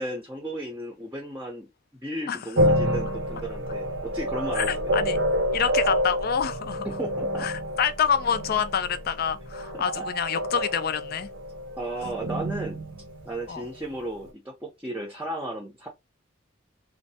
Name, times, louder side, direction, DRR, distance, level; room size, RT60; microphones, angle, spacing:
voice 1, 0.0-4.9 6.8-7.5 9.7-10.1 11.8-12.8 13.2-15.9, right 1 dB, 10° right, 0.6 m, -35 dB
sound 1, 2.6-14.0, equal, 70° right, 0.7 m, -28 dB
voice 2, 4.6-5.2 5.5-6.9 7.4-11.3 13.5-13.6, left 7 dB, 50° left, 0.4 m, -27 dB
3.1 x 2.1 x 2.7 m
head